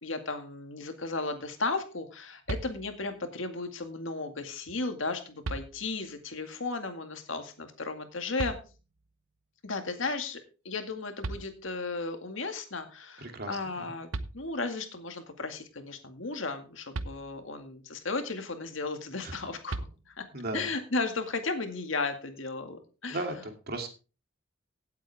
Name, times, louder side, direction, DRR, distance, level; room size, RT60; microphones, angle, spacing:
voice 1, 0.0-8.6 9.6-20.3 20.5-23.5, left 3 dB, 70° left, 7 dB, 2.1 m, -35 dB
sound 1, 2.5-3.2 4.7-4.8 5.4-6.2 8.4-9.1 10.9-11.0 11.2-12.1 13.8-13.9 14.1-14.9 16.9-17.7 19.7-20.5, right 2 dB, 80° right, 0.8 m, -39 dB
voice 2, 13.2-13.5 13.8-13.9 19.2-19.4 20.3-20.7 23.1-23.9, right 2 dB, 50° right, 4 dB, 2.7 m, -35 dB
17.0 x 8.2 x 3.5 m, 0.33 s
head